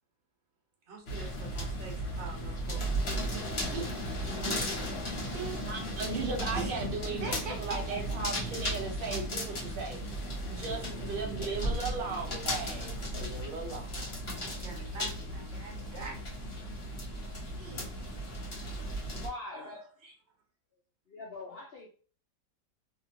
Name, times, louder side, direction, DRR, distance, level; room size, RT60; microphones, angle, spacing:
voice 1, 0.9-4.8 5.1-5.6 6.7-8.0 14.3-16.2 17.4-17.9 19.5-19.7 20.0-20.1, right 4 dB, 45° right, -1 dB, 1.1 m, -44 dB
sound 1, 1.1-19.3, equal, 40° left, 1.1 m, -35 dB
voice 2, 5.7-10.0 10.5-13.9, right 4 dB, 70° right, 1 dB, 0.5 m, -37 dB
sound 2, 6.5-8.1 8.5-10.2 10.7-10.8 11.3-12.6 13.3-13.4, right 1 dB, 15° right, 0.6 m, -56 dB
voice 3, 19.1-20.0 21.1-21.9, left 2 dB, 65° left, -2 dB, 0.5 m, -44 dB
2.8 x 2.7 x 2.7 m, 0.39 s
omnidirectional pair, 1.9 m